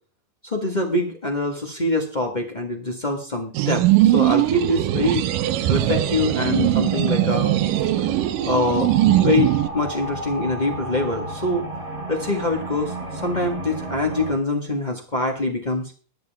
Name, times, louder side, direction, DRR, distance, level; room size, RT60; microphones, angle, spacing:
voice 1, 0.4-5.3 5.7-7.5 8.4-8.9 9.2-11.7 12.1-15.9, left 2 dB, 50° left, 1 dB, 0.5 m, -24 dB
sound 1, 3.5-9.7, right 14 dB, 85° right, 2.5 m, -20 dB
sound 2, 3.9-14.3, right 1 dB, 50° right, 7.8 m, -34 dB
21.5 x 7.4 x 3.5 m, 0.40 s
omnidirectional pair, 3.7 m